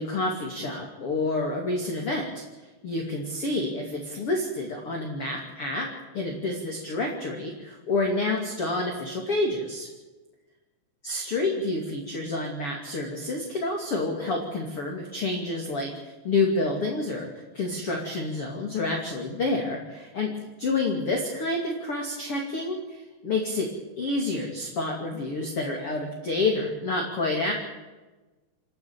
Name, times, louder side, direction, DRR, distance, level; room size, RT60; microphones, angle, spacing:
voice 1, 0.0-2.3 2.8-5.9 6.1-9.9 11.0-20.3 20.6-23.7 24.0-27.5, left 2 dB, 35° left, 1 dB, 2.9 m, -28 dB
28.0 x 10.5 x 9.1 m, 1.2 s
omnidirectional pair, 5.0 m